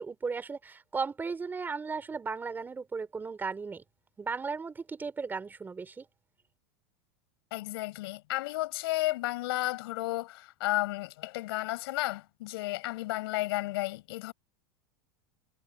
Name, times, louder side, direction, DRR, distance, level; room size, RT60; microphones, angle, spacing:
voice 1, 0.0-3.8 4.2-6.1, right 4 dB, 15° right, 3.9 m, -36 dB
voice 2, 7.5-14.3, left 19 dB, 70° left, 7.1 m, -33 dB
supercardioid pair, 135°, 13 cm